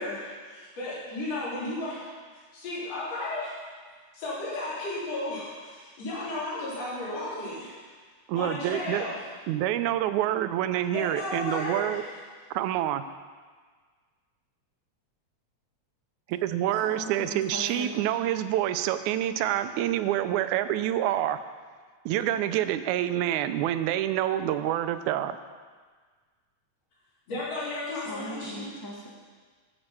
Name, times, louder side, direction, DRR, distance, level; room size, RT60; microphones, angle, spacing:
voice 1, 0.0-2.1 2.5-3.6 4.1-7.9 8.3-9.2 10.9-12.1 27.3-28.7, left 2 dB, 60° left, -8 dB, 4.2 m, -34 dB
voice 2, 8.3-9.0 9.5-12.0 12.5-13.0 16.3-21.4 22.1-25.4, right 12 dB, 85° right, 11 dB, 2.0 m, -27 dB
voice 3, 16.8-18.0 28.0-29.1, equal, 10° left, -3 dB, 1.1 m, -39 dB
16.0 x 7.1 x 5.5 m, 1.5 s
omnidirectional pair, 3.4 m